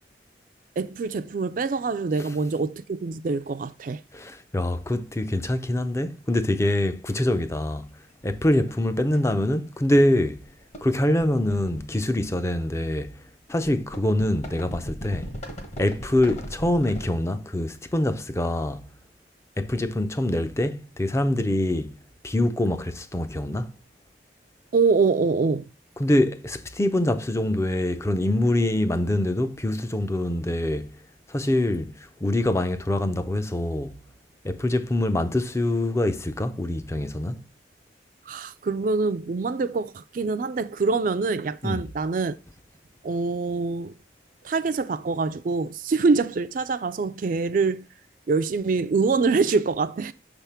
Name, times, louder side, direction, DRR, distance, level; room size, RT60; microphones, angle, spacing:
voice 1, 0.8-4.0 24.7-25.6 38.3-42.4 43.0-43.9 44.4-47.9 48.3-50.1, right 4 dB, 50° right, 0.3 m, -25 dB
voice 2, 4.1-7.9 8.2-10.4 10.8-13.2 13.5-15.3 15.8-18.9 19.6-21.9 22.2-23.7 26.0-30.9 31.3-34.0 34.4-37.5 41.6-41.8, left 1 dB, 15° left, 0.4 m, -24 dB
sound 1, 7.1-7.2 8.7-8.8 9.1-9.4 10.0-10.2 10.4-12.6 13.6-17.1, equal, 40° left, 1.1 m, -38 dB
6.5 x 3.5 x 5.6 m
head